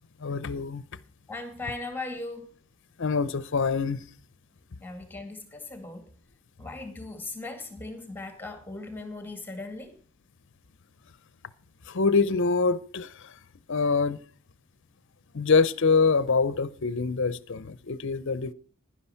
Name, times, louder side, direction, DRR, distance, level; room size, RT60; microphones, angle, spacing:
voice 1, 0.2-0.8 3.0-4.0 11.9-13.3 13.7-14.2 15.3-18.5, left 4 dB, 60° left, 0.6 m, -25 dB
voice 2, 1.3-2.5 4.8-6.1 6.6-10.0, left 2 dB, 10° left, 2.0 m, -38 dB
11.5 x 10.0 x 5.7 m
head